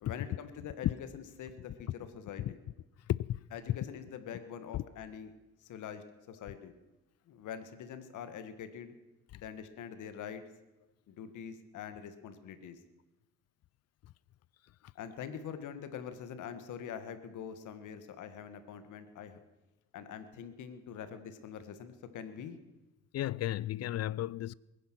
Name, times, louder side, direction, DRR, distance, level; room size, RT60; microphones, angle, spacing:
voice 1, 0.0-2.6 3.5-5.3 5.6-6.7 7.3-8.9 9.3-10.4 11.1-12.8 14.9-19.4 19.9-22.6, left 8 dB, 80° left, 1.7 m, -44 dB
voice 2, 23.1-24.5, left 13 dB, 55° left, 0.5 m, -33 dB
21.5 x 10.0 x 6.1 m
cardioid pair, 90°, 30 cm